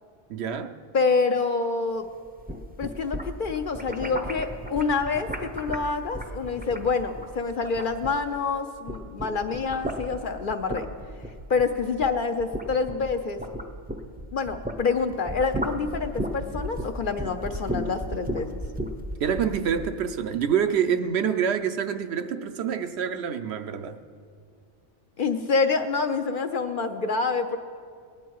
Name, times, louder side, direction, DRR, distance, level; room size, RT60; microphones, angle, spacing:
voice 1, 0.3-0.8 19.2-24.0, right 7 dB, 65° right, 0.8 m, -26 dB
voice 2, 0.9-2.1 2.8-10.9 11.5-13.4 14.3-18.6 25.2-27.6, left 4 dB, 55° left, 0.6 m, -27 dB
sound 1, 2.3-8.5 8.8-14.8 15.1-19.9, equal, 10° right, 0.5 m, -34 dB
18.5 x 9.9 x 4.6 m
omnidirectional pair, 1.2 m